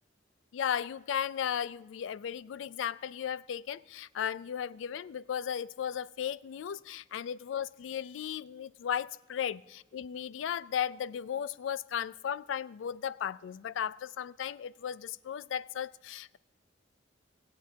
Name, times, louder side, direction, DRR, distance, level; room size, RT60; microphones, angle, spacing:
voice 1, 0.5-16.4, left 8 dB, 85° left, 0.3 m, -35 dB
19.0 x 8.0 x 3.4 m
head